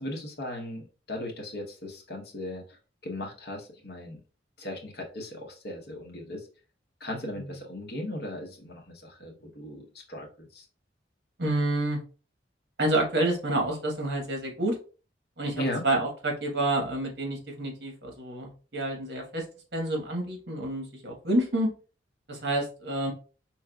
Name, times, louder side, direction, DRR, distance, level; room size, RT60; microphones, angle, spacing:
voice 1, 0.0-2.8 3.0-4.2 4.6-6.5 7.0-10.7 15.6-15.8, left 1 dB, 55° left, 1 dB, 0.9 m, -37 dB
voice 2, 11.4-12.0 12.8-14.8 15.4-15.5 15.8-19.4 19.7-21.7 22.3-23.1, right 1 dB, 60° right, 1 dB, 1.2 m, -28 dB
4.7 x 3.1 x 2.3 m, 0.36 s
head